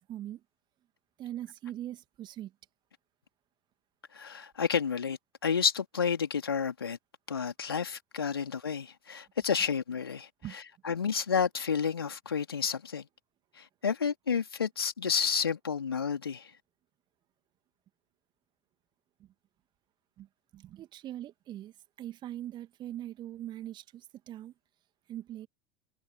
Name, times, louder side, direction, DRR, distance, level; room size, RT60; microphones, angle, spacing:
voice 1, 0.1-0.4 1.2-2.5 10.4-10.6 19.2-19.3 20.2-20.3 20.5-24.5 25.1-25.5, right 12 dB, 35° right, 2.4 m, -41 dB
voice 2, 4.1-7.0 7.3-13.1 13.6-16.5, left 6 dB, 75° left, 3.5 m, -31 dB
figure-of-eight pair, 75°, 12 cm